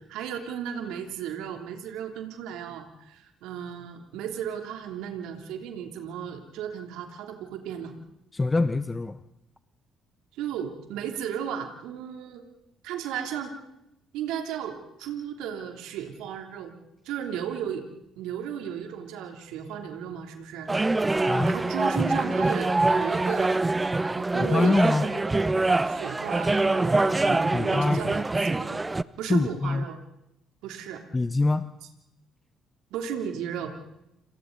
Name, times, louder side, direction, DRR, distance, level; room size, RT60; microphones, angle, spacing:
voice 1, 0.0-7.9 10.3-12.4 12.8-13.6 14.1-16.8 17.0-17.8 18.2-20.7 21.4-23.5 24.2-25.2 25.8-28.8 29.2-30.0 30.6-31.0 32.9-33.8, right 8 dB, 70° right, 4 dB, 3.1 m, -35 dB
voice 2, 8.3-9.2 21.2-21.5 24.4-25.1 27.3-28.0 29.2-29.9 31.1-31.7, left 2 dB, 20° left, 12 dB, 1.0 m, -24 dB
sound 1, 20.7-29.0, right 2 dB, 20° right, 0.8 m, -24 dB
29.5 x 27.0 x 4.0 m, 0.85 s
hypercardioid pair, 50°, 0 cm